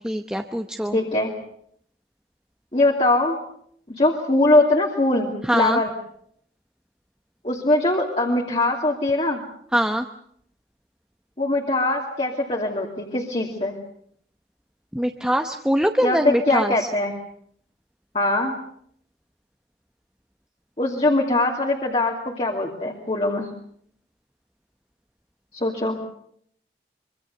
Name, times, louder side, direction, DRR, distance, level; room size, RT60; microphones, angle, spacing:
voice 1, 0.0-1.0 5.4-5.8 9.7-10.1 14.9-16.9, equal, 5° right, 5 dB, 0.9 m, -23 dB
voice 2, 0.9-1.3 2.7-3.4 3.9-5.9 7.4-9.4 11.4-13.8 16.0-17.1 18.1-18.6 20.8-23.5 25.5-26.0, left 2 dB, 35° left, -1 dB, 2.6 m, -22 dB
25.5 x 24.0 x 6.7 m, 0.67 s
head